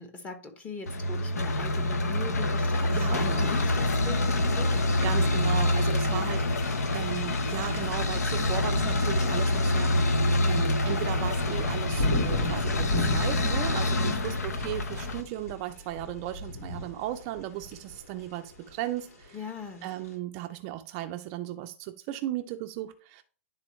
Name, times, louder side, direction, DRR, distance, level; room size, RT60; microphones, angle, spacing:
voice 1, 0.0-4.8 6.0-6.3 10.4-10.7 13.8-14.4 19.3-19.9, left 5 dB, 15° left, 0.9 m, -40 dB
sound 1, 0.9-15.2, left 1 dB, 85° left, 0.9 m, -26 dB
voice 2, 2.9-3.5 4.8-19.4 19.8-23.2, right 13 dB, 30° right, 0.4 m, -36 dB
sound 2, 4.0-20.1, left 1 dB, 70° left, 3.4 m, -36 dB
10.5 x 3.8 x 3.1 m
hypercardioid pair, 145°, 8 cm